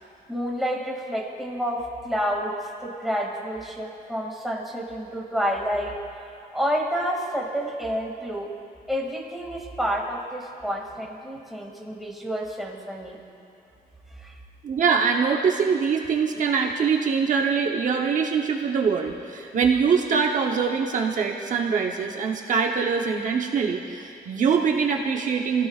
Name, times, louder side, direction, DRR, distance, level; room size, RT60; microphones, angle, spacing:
voice 1, 0.3-2.5 2.8-5.9 6.5-8.5 8.9-13.2 14.2-14.4, equal, ahead, -2 dB, 2.3 m, -29 dB
voice 2, 14.6-25.7, right 6 dB, 55° right, 1 dB, 1.0 m, -23 dB
29.5 x 16.5 x 2.5 m, 2.6 s
cardioid pair, 140°, 16 cm